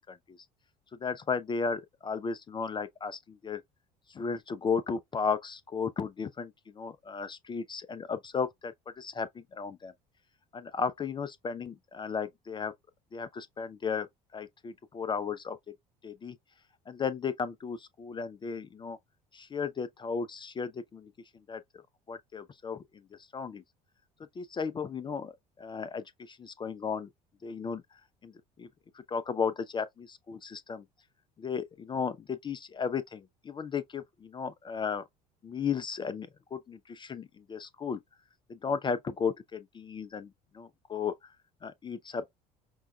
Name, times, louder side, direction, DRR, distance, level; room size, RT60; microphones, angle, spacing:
voice 1, 1.0-3.6 4.1-9.9 10.5-12.7 13.1-14.1 14.3-15.6 16.0-16.3 16.9-19.0 19.3-21.1 21.5-21.6 22.1-22.8 23.3-23.6 24.4-25.3 25.6-27.1 27.4-27.8 28.2-28.3 28.6-28.7 29.1-30.8 31.4-35.0 35.4-38.0 38.5-40.3 40.5-41.1 41.6-42.4, left 5 dB, 25° left, 0.4 m, -34 dB
5.3 x 2.2 x 2.3 m
hypercardioid pair, 65°, 21 cm